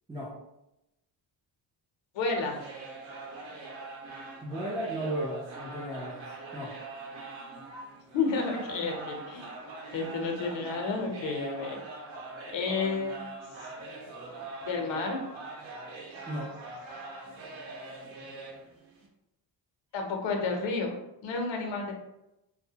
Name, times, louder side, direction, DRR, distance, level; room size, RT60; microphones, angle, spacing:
voice 1, 2.1-2.6 8.1-9.5 9.9-11.8 12.5-13.2 13.6-13.7 14.6-15.2 19.9-20.9 21.2-21.9, left 4 dB, 70° left, 2 dB, 0.7 m, -31 dB
sound 1, 2.3-19.1, right 3 dB, 85° right, 0.7 m, -43 dB
voice 2, 4.4-6.2 6.5-6.7 16.3-16.5, right 1 dB, 10° right, -8 dB, 0.3 m, -34 dB
2.6 x 2.2 x 2.7 m, 0.89 s
cardioid pair, 145°, 46 cm